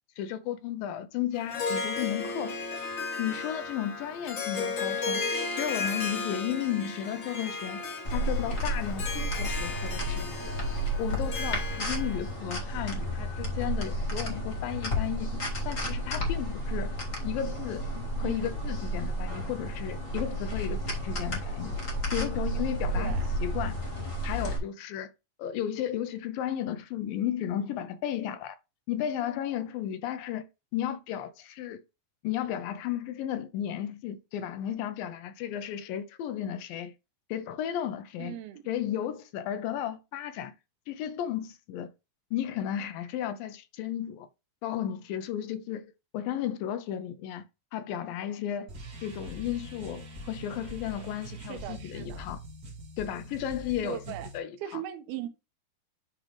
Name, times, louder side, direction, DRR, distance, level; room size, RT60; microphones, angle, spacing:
voice 1, 0.2-2.6 3.2-5.2 5.5-7.8 8.1-10.5 11.0-15.3 15.7-17.0 17.2-17.9 18.2-21.8 22.1-23.8 24.2-25.1 25.4-28.6 28.9-30.4 30.7-31.8 32.2-36.9 37.3-38.4 38.7-40.5 40.9-41.9 42.3-44.3 44.6-47.4 47.7-48.7 49.0-52.4 53.0-54.8, left 10 dB, 80° left, 2.4 m, -34 dB
Harp, 1.4-12.3, left 4 dB, 55° left, 1.3 m, -35 dB
sound 1, 8.0-24.6, equal, 30° left, 1.5 m, -32 dB
voice 2, 18.2-18.6 22.9-23.3 38.2-38.6 51.4-52.3 53.8-54.3 54.6-55.3, right 12 dB, 85° right, 2.9 m, -38 dB
sound 2, 48.7-54.4, right 1 dB, 45° right, 1.3 m, -43 dB
10.0 x 3.8 x 3.3 m
omnidirectional pair, 4.3 m